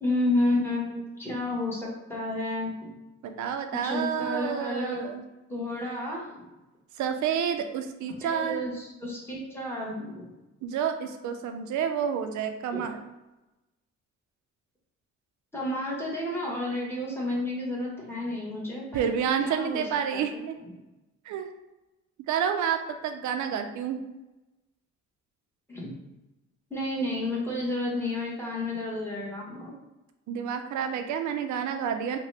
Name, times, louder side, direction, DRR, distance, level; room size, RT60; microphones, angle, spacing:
voice 1, 0.0-2.9 3.8-5.1 5.5-6.4 8.2-10.3 12.7-12.8 15.5-19.0 19.4-19.8 20.1-20.2 25.7-25.9 26.7-29.7, left 1 dB, 10° left, -5 dB, 1.0 m, -31 dB
voice 2, 3.2-5.3 7.0-8.6 10.6-13.0 18.9-20.6 21.3-21.5 22.3-24.0 30.3-32.2, right 8 dB, 70° right, 7 dB, 0.5 m, -29 dB
2.8 x 2.2 x 3.2 m, 1.0 s
cardioid pair, 90°, 30 cm